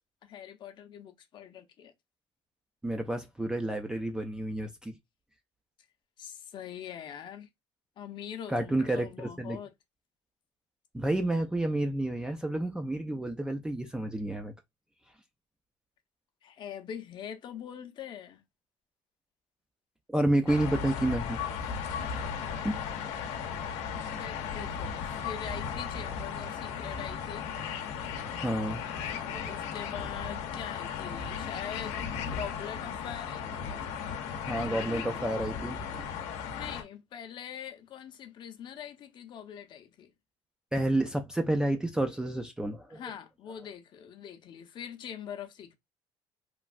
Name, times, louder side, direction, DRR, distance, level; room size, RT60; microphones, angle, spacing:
voice 1, 0.2-1.9 6.2-7.5 8.0-9.7 16.4-18.4 24.2-27.5 29.5-33.8 36.5-40.1 42.9-45.7, left 9 dB, 45° left, 0.6 m, -43 dB
voice 2, 2.8-4.9 8.5-9.6 10.9-14.5 20.1-21.7 22.6-22.7 28.4-29.6 34.4-36.1 40.7-43.0, right 1 dB, 5° right, 0.4 m, -30 dB
sound 1, 20.5-36.8, left 7 dB, 80° left, 0.7 m, -36 dB
3.1 x 2.3 x 2.4 m
cardioid pair, 135°, 11 cm